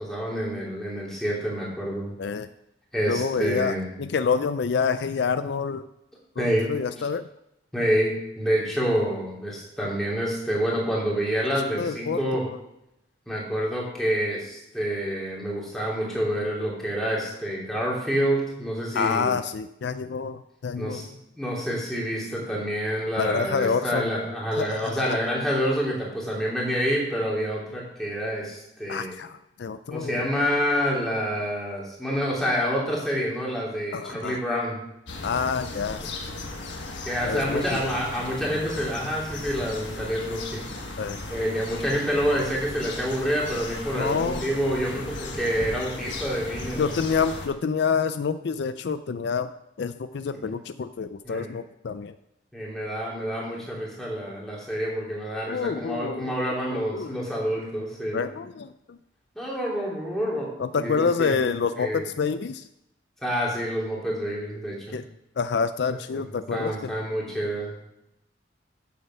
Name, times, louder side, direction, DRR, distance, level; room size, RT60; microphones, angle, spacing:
voice 1, 0.0-2.1 2.9-3.8 6.4-6.7 7.7-12.4 13.3-19.3 20.8-21.0 21.4-29.1 29.9-34.8 37.0-40.6 41.3-46.9 51.2-51.5 52.5-58.3 59.3-60.5 60.7-61.3 61.8-62.0 63.2-65.0 66.1-66.2 66.5-67.7, equal, ahead, -5 dB, 2.9 m, -27 dB
voice 2, 3.1-5.9 6.4-7.3 11.7-12.2 18.9-21.1 23.2-24.1 24.5-25.2 28.9-30.3 33.9-34.4 35.2-36.1 36.4-36.5 37.2-37.8 41.0-41.2 44.0-44.5 46.8-49.5 49.8-52.1 55.5-56.4 56.7-57.1 58.1-59.0 60.6-62.6 64.9-65.0 65.4-66.9, left 5 dB, 65° left, 12 dB, 0.4 m, -27 dB
sound 1, 35.1-47.5, left 2 dB, 80° left, 1.5 m, -36 dB
8.5 x 7.6 x 5.6 m, 0.84 s
head